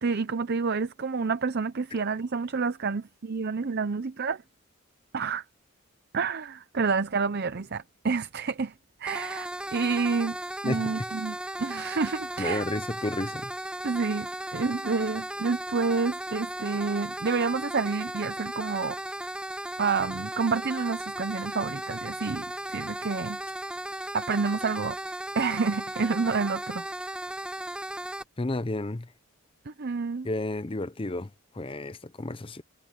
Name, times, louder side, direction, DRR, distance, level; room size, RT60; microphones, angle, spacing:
voice 1, 0.0-4.4 5.1-5.4 6.1-8.7 9.0-10.4 10.6-12.6 13.8-19.0 19.8-23.4 24.1-25.0 25.3-26.8 29.7-30.3, right 4 dB, 50° right, 0.6 m, -29 dB
sound 1, 9.1-28.2, right 1 dB, 5° right, 0.9 m, -36 dB
voice 2, 10.6-10.9 12.4-13.5 28.4-29.1 30.2-32.6, left 2 dB, 25° left, 0.7 m, -32 dB
head